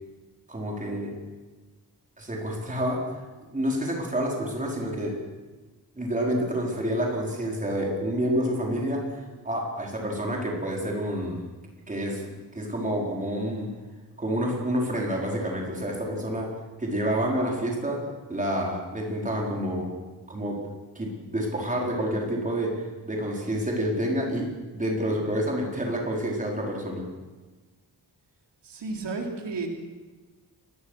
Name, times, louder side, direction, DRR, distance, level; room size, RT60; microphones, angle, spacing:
voice 1, 0.5-1.2 2.2-3.1 3.5-5.2 6.0-11.5 11.9-13.7 14.2-16.5 16.8-20.0 20.3-20.7 20.9-27.1, equal, 20° right, -1 dB, 4.6 m, -28 dB
voice 2, 28.6-29.7, right 3 dB, 90° right, 1 dB, 4.2 m, -32 dB
29.0 x 21.0 x 6.5 m, 1.3 s
wide cardioid pair, 175°, 41 cm